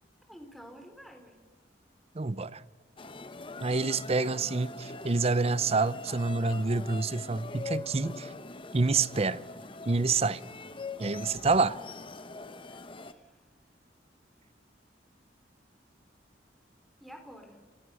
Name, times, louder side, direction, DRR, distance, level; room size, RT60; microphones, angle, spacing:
voice 1, 0.3-1.4 12.7-13.4 17.0-17.6, equal, ahead, 3.9 m, -50 dB
voice 2, 2.1-2.6 3.6-8.3 8.7-9.4 9.9-10.4 11.0-11.8, right 3 dB, 35° right, 0.7 m, -27 dB
sound 1, 3.0-13.1, left 3 dB, 30° left, 1.0 m, -42 dB
28.5 x 23.5 x 6.4 m
head